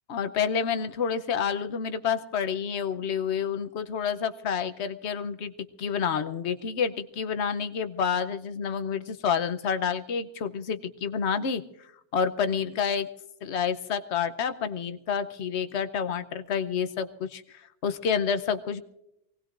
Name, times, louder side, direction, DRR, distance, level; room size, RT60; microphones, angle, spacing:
voice 1, 0.1-5.5 5.8-11.6 12.1-13.1 13.4-17.4 17.8-18.8, left 7 dB, 70° left, 10 dB, 1.1 m, -29 dB
24.5 x 18.5 x 2.5 m, 0.83 s
omnidirectional pair, 1.2 m